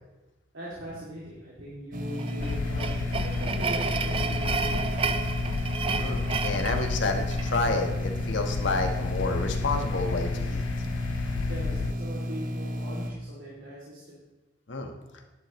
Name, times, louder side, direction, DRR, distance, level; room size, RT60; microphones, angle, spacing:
voice 1, 0.5-4.8 11.3-14.2, equal, 85° right, -6 dB, 2.6 m, -40 dB
sound 1, 1.9-13.1, equal, 45° right, 1.1 m, -33 dB
sound 2, 2.1-7.7, right 5 dB, 30° right, 0.4 m, -32 dB
sound 3, 2.4-11.9, left 5 dB, 85° left, 0.4 m, -33 dB
voice 2, 6.0-10.6 14.7-14.9, left 3 dB, 70° left, 4 dB, 1.3 m, -29 dB
11.0 x 11.0 x 3.1 m, 1.1 s
head